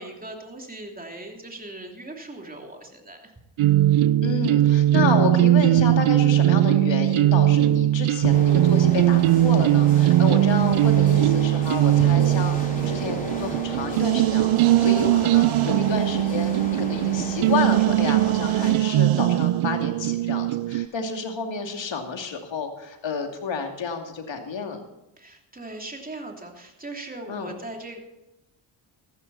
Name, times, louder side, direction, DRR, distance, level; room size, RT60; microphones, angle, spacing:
voice 1, 0.0-3.3 25.2-28.0, right 2 dB, 15° right, 2 dB, 3.0 m, -39 dB
sound 1, 3.6-20.9, right 14 dB, 75° right, 0.6 m, -20 dB
voice 2, 4.2-24.8 27.3-27.5, left 5 dB, 60° left, 4 dB, 2.6 m, -30 dB
sound 2, 8.3-18.7, equal, 15° left, 4.5 m, -35 dB
14.5 x 13.0 x 4.2 m, 0.94 s
cardioid pair, 75°, 50 cm